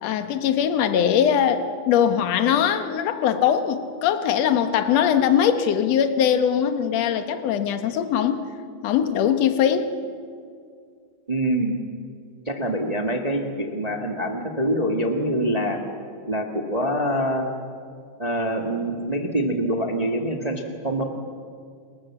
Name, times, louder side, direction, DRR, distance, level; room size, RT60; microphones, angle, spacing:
voice 1, 0.0-8.4 8.8-9.9, left 8 dB, 60° left, 8 dB, 2.1 m, -21 dB
voice 2, 11.3-11.8 12.4-15.8 16.3-17.5 18.2-21.0, right 1 dB, 40° right, 3 dB, 0.5 m, -25 dB
30.0 x 21.0 x 7.5 m, 2.2 s
omnidirectional pair, 4.1 m